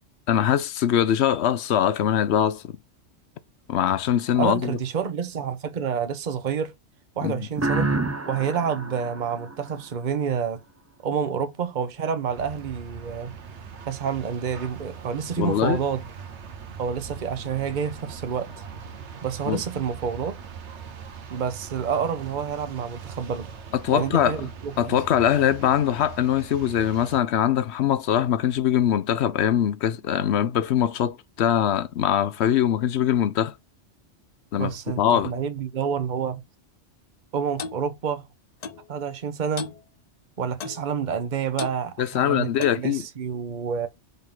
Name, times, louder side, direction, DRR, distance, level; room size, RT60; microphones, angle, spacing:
voice 1, 0.3-2.8 3.7-4.8 7.2-7.5 15.4-15.8 19.5-19.6 23.8-24.4 24.8-33.5 34.5-35.3 42.0-43.0, left 10 dB, 70° left, 0.9 m, -22 dB
voice 2, 4.4-6.7 7.2-7.9 8.3-10.6 11.0-13.3 13.9-16.0 16.8-18.6 19.2-20.4 21.3-23.5 23.9-25.0 34.6-36.4 37.3-38.2 38.9-39.7 40.4-42.5 42.8-43.9, right 7 dB, 45° right, 1.0 m, -28 dB
sound 1, 7.6-10.2, right 2 dB, 20° right, 0.5 m, -29 dB
sound 2, 12.3-27.2, right 6 dB, 75° right, 1.3 m, -41 dB
Clock, 37.6-37.8 38.6-38.8 39.6-39.8 40.6-40.8 41.6-41.8 42.6-42.9, left 5 dB, 45° left, 0.6 m, -34 dB
5.4 x 3.6 x 5.6 m
omnidirectional pair, 1.2 m